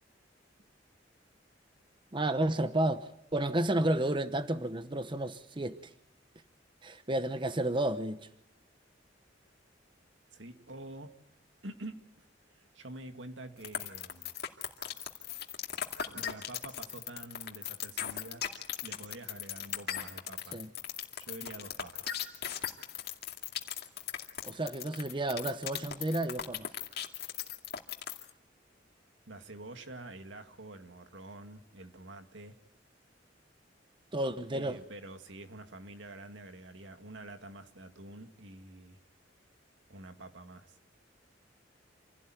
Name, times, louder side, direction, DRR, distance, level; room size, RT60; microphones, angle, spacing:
voice 1, 2.1-5.8 6.8-8.3 20.5-20.7 24.4-26.7 34.1-34.8, right 1 dB, 25° right, 0.9 m, -31 dB
voice 2, 10.3-11.2 11.6-14.3 16.1-18.4 18.8-20.6 21.2-22.2 29.3-32.6 34.5-39.0 39.9-40.8, right 2 dB, 85° right, 2.3 m, -47 dB
sound 1, 13.6-28.3, left 9 dB, 60° left, 2.3 m, -37 dB
27.5 x 16.5 x 9.3 m
head